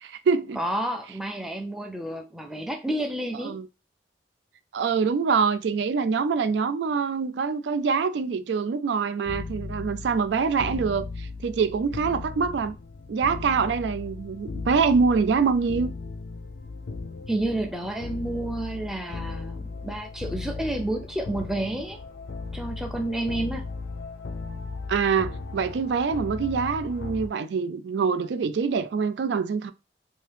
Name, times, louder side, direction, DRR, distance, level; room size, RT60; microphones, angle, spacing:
voice 1, 0.0-0.6 3.4-3.7 4.7-12.7 13.1-15.9 24.9-29.7, right 5 dB, 75° right, 0.3 m, -25 dB
voice 2, 0.6-3.6 17.3-22.0 22.5-23.6, right 1 dB, ahead, 0.4 m, -30 dB
sound 1, 9.3-27.3, left 3 dB, 70° left, 0.4 m, -37 dB
2.7 x 2.7 x 3.3 m
head